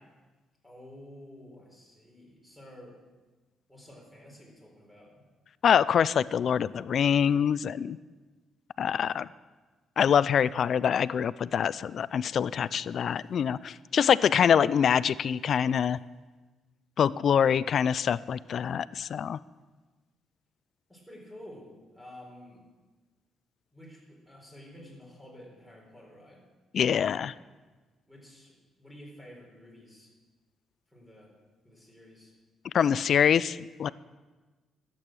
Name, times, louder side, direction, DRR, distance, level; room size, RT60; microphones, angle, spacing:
voice 1, 0.6-3.0 3.7-5.1 20.9-22.6 23.7-26.4 28.1-30.1 30.9-31.3 31.6-32.3, left 1 dB, ahead, -1 dB, 4.2 m, -50 dB
voice 2, 5.6-8.0 8.8-9.3 10.0-16.0 17.0-19.4 26.7-27.3 32.7-33.9, left 8 dB, 60° left, 19 dB, 0.3 m, -25 dB
12.0 x 8.5 x 6.2 m, 1.3 s
cardioid pair, 90°, 0 cm